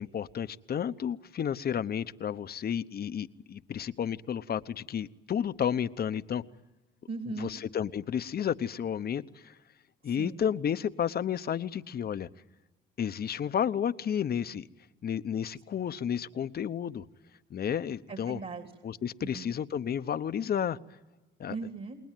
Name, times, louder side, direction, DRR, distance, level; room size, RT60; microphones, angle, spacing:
voice 1, 0.0-6.4 7.4-9.6 10.0-12.3 13.0-14.7 15.0-17.0 17.5-18.4 18.8-20.8 21.4-21.6, left 8 dB, 50° left, 13 dB, 0.9 m, -32 dB
voice 2, 7.1-7.6 10.2-10.4 15.8-15.9 18.1-18.7 19.2-19.5 21.5-22.0, right 4 dB, 50° right, 5 dB, 2.9 m, -38 dB
29.5 x 20.5 x 9.1 m, 1.2 s
cardioid pair, 90°, 20 cm